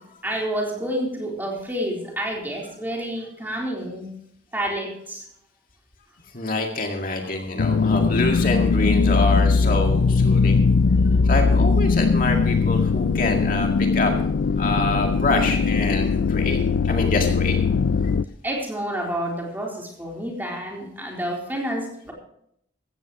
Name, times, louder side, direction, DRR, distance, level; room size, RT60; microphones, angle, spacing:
voice 1, 0.2-4.1 4.5-5.3 11.1-11.2 18.4-22.1, right 1 dB, 10° right, -1 dB, 3.8 m, -29 dB
voice 2, 6.3-10.6 11.2-14.1 14.5-17.6 18.5-18.6, left 2 dB, 50° left, 2 dB, 2.0 m, -26 dB
sound 1, 7.6-18.2, left 4 dB, 80° left, 0.4 m, -20 dB
16.0 x 15.0 x 3.1 m, 0.70 s
head